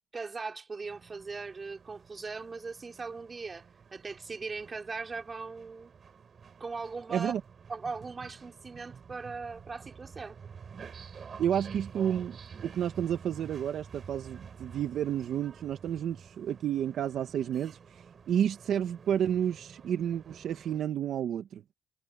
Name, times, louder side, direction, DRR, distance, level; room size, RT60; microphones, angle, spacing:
voice 1, 0.0-3.7 3.9-5.9 6.6-7.3 7.7-10.4, right 4 dB, 30° right, 4.1 m, -39 dB
sound 1, 0.8-20.8, right 6 dB, 45° right, 4.0 m, -49 dB
voice 2, 7.1-7.4 11.4-12.4 12.6-17.8 18.3-21.6, right 9 dB, 70° right, 1.2 m, -30 dB
cardioid pair, 90°, 0 cm